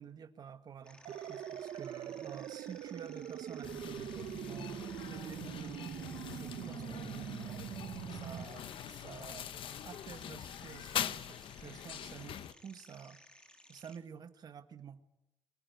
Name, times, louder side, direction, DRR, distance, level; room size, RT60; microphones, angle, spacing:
voice 1, 0.0-5.9 6.3-7.6 8.1-9.5 9.8-13.2 13.7-15.0, right 7 dB, 45° right, 10 dB, 1.5 m, -50 dB
sound 1, 0.8-14.0, left 1 dB, 10° left, 2.5 m, -59 dB
sound 2, 1.0-8.4, right 10 dB, 80° right, 0.9 m, -43 dB
sound 3, 3.6-12.5, left 10 dB, 65° left, 0.9 m, -43 dB
25.0 x 18.5 x 9.5 m, 0.88 s
wide cardioid pair, 170°, 9 cm